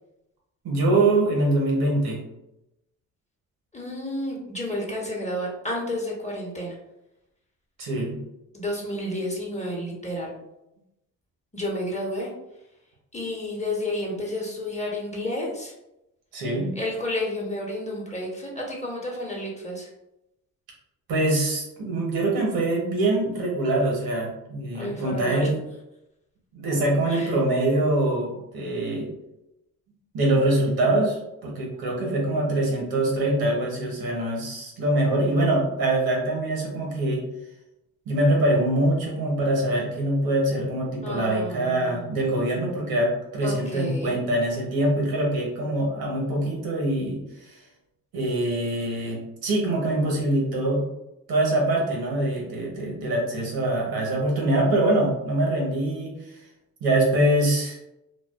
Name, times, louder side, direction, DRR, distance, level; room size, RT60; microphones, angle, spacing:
voice 1, 0.6-2.2 7.8-8.1 16.3-16.7 21.1-25.6 26.5-29.1 30.1-37.2 38.1-47.2 47.5-47.6 48.1-50.8 51.3-56.2 56.8-57.8, right 1 dB, 80° right, -2 dB, 0.9 m, -24 dB
voice 2, 3.7-6.8 8.5-10.4 11.5-12.3 13.1-15.7 16.7-19.9 24.7-25.5 27.1-27.4 41.0-42.0 43.4-44.2, left 1 dB, 20° left, -2 dB, 0.9 m, -31 dB
2.3 x 2.3 x 2.3 m, 0.89 s
supercardioid pair, 50°, 36 cm